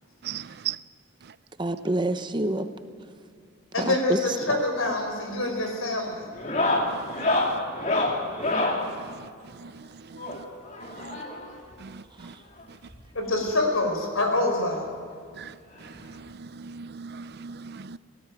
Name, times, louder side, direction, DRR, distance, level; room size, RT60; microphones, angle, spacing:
voice 1, 0.2-0.8 9.6-9.7 11.0-11.2 11.8-11.9 12.2-12.3 15.4-15.5 16.4-18.0, right 8 dB, 50° right, 0.5 m, -37 dB
voice 2, 1.6-2.7 3.8-4.6 12.2-12.4, right 1 dB, 20° right, 0.8 m, -28 dB
voice 3, 3.7-6.2 13.1-14.8, left 2 dB, 85° left, 4.9 m, -26 dB
sound 1, 4.8-5.1 5.4-5.8 6.3-8.9 10.2-11.6 12.6-12.7 12.9-13.0 13.5-13.6 14.9-15.0 16.3-16.4, left 2 dB, 35° left, 2.8 m, -27 dB
18.5 x 17.0 x 9.1 m
head